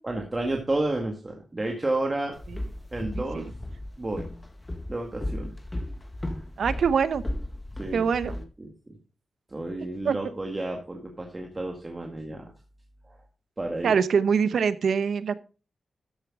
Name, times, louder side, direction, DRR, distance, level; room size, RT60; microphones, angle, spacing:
voice 1, 0.0-2.4 2.9-3.5 4.0-4.3 4.9-5.6 7.8-8.7 9.5-12.5 13.1-13.2 13.6-13.9, right 2 dB, 25° right, 2 dB, 1.9 m, -31 dB
Walk footsteps, 2.3-8.4, left 1 dB, 20° left, 1.8 m, -35 dB
voice 2, 6.6-7.2 7.9-8.4 10.0-10.2 13.8-15.4, right 6 dB, 85° right, 14 dB, 0.8 m, -23 dB
13.0 x 8.2 x 3.7 m, 0.34 s
wide cardioid pair, 105°, 0 cm